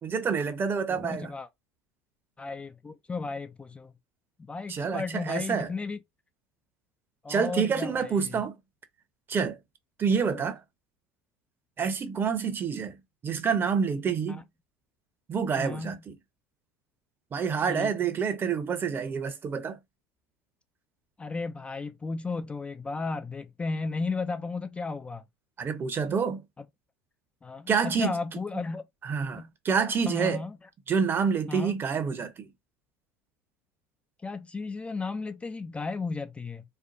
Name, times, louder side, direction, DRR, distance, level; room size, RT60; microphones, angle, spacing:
voice 1, 0.0-1.3 4.7-5.7 7.3-8.6 9.3-9.6 10.0-10.6 11.8-13.0 13.2-14.4 15.3-16.1 17.3-19.8 25.6-26.4 27.7-28.1 29.0-30.4 30.9-32.5, right 6 dB, 35° right, 0.9 m, -27 dB
voice 2, 0.9-1.5 2.4-3.9 4.5-6.0 7.2-8.4 10.3-10.5 15.6-16.0 17.7-17.9 21.2-25.2 26.6-26.7 27.4-28.9 29.3-29.5 30.1-30.6 31.5-31.8 34.2-36.6, left 4 dB, 15° left, 0.4 m, -34 dB
4.4 x 2.2 x 2.6 m
hypercardioid pair, 80°, 7 cm